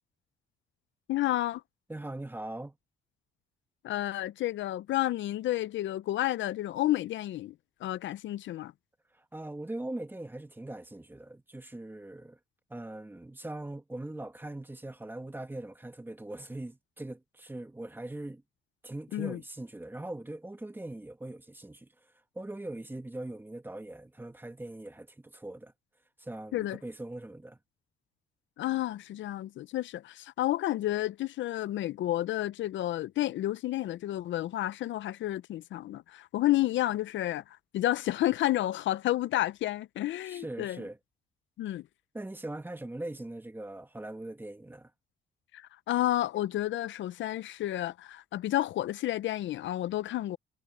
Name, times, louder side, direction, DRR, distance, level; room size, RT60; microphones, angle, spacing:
voice 1, 1.1-1.6 3.8-7.5 7.8-8.7 19.1-19.4 26.5-26.8 28.6-40.8 41.6-41.9 45.5-50.4, left 14 dB, 70° left, 0.6 m, -31 dB
voice 2, 1.9-2.8 9.2-12.4 12.7-18.4 18.8-21.9 22.3-25.7 26.2-27.6 40.3-41.0 42.1-44.9, right 1 dB, 10° right, 1.4 m, -41 dB
cardioid pair, 90°, 20 cm